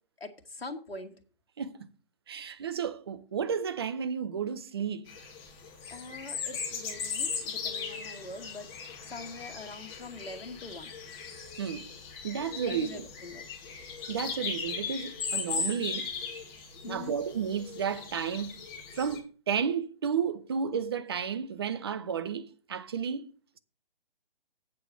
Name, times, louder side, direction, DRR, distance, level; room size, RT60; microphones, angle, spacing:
voice 1, 0.2-1.2 5.9-10.9 12.6-13.4 16.8-17.2, left 2 dB, 85° left, 1.4 m, -43 dB
voice 2, 2.3-5.1 11.6-11.9 12.2-13.0 14.1-16.1 16.9-18.6 18.9-23.3, right 7 dB, 25° right, 0.5 m, -32 dB
sound 1, 5.1-19.2, left 6 dB, 15° left, 1.7 m, -38 dB
8.3 x 4.8 x 7.4 m
figure-of-eight pair, 140°, 29 cm